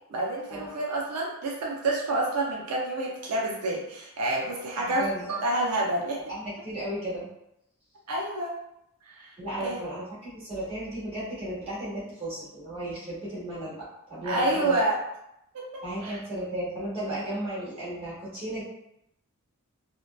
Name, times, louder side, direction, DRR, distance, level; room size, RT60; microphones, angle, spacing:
voice 1, 0.1-6.2 8.1-8.6 9.1-9.9 14.2-15.0 15.5-16.2, right 2 dB, 80° right, -3 dB, 0.5 m, -28 dB
voice 2, 4.8-5.2 6.3-7.3 9.4-14.8 15.8-18.6, right 1 dB, 25° right, -9 dB, 1.1 m, -34 dB
2.6 x 2.1 x 2.2 m, 0.82 s
head